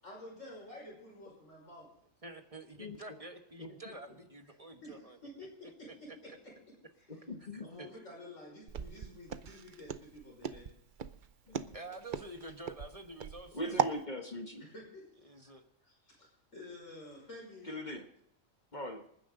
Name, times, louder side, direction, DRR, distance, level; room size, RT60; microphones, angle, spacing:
voice 1, 0.0-1.9 3.7-3.8 4.1-4.2 4.8-6.1 6.9-7.2 7.6-10.7 14.6-15.1 15.8-17.7, left 1 dB, 70° left, -3 dB, 6.1 m, -50 dB
voice 2, 2.2-6.0 6.3-6.4 7.5-7.9 11.7-14.1 15.2-15.6, right 2 dB, 25° right, 6 dB, 1.4 m, -49 dB
voice 3, 7.1-7.7 11.5-11.8 13.5-14.7 17.6-18.1 18.7-19.0, equal, 35° left, 4 dB, 1.5 m, -41 dB
Walk footsteps, 8.7-14.0, right 7 dB, 45° right, 0.7 m, -37 dB
27.0 x 9.9 x 3.9 m, 0.75 s
omnidirectional pair, 1.4 m